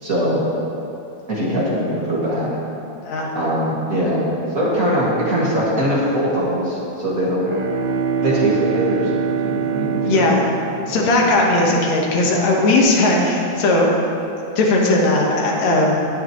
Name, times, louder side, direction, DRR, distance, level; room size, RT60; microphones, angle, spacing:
voice 1, 0.0-0.4 1.3-2.5 3.3-4.2 4.5-7.5 8.2-9.1 9.4-10.2 10.8-11.0, equal, 30° right, -7 dB, 2.1 m, -21 dB
voice 2, 3.0-3.3 10.0-10.4 10.9-13.9 14.6-16.0, left 2 dB, 65° left, -1 dB, 2.5 m, -17 dB
Bowed string instrument, 7.4-12.0, right 6 dB, 65° right, 1.4 m, -24 dB
19.5 x 6.6 x 3.1 m, 2.9 s
omnidirectional pair, 3.6 m